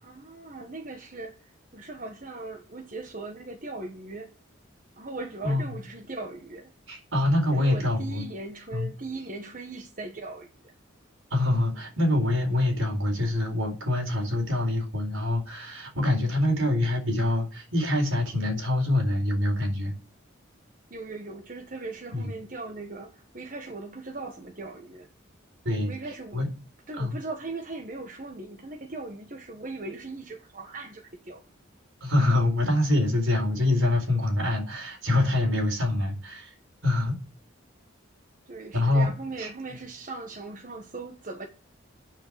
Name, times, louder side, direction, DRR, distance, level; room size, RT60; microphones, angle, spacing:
voice 1, 0.0-4.3 4.9-6.7 7.5-10.7 20.9-25.1 25.9-26.4 26.9-31.4 38.5-41.5, right 3 dB, 40° right, 1.4 m, -39 dB
voice 2, 6.9-8.3 8.7-8.9 11.3-19.9 22.1-22.3 25.6-25.9 26.3-26.5 27.0-27.2 32.0-36.5 36.8-37.2 38.7-39.1 39.4-39.5, left 1 dB, 80° right, 4.2 m, -25 dB
9.0 x 6.7 x 7.5 m
head